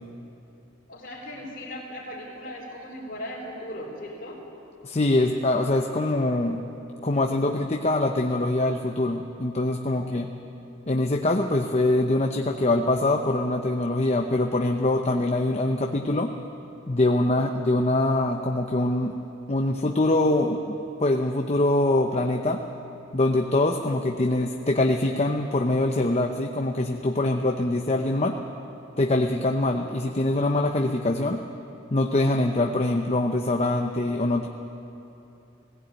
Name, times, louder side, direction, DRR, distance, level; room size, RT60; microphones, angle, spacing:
voice 1, 0.9-4.4 9.9-10.0, left 1 dB, 50° left, -9 dB, 4.0 m, -38 dB
voice 2, 4.8-6.6 7.0-10.3 10.9-16.3 16.9-19.1 19.5-22.6 23.1-28.4 29.0-31.4 31.9-34.5, left 2 dB, 35° left, 3 dB, 0.8 m, -24 dB
18.0 x 16.5 x 9.0 m, 3.0 s
head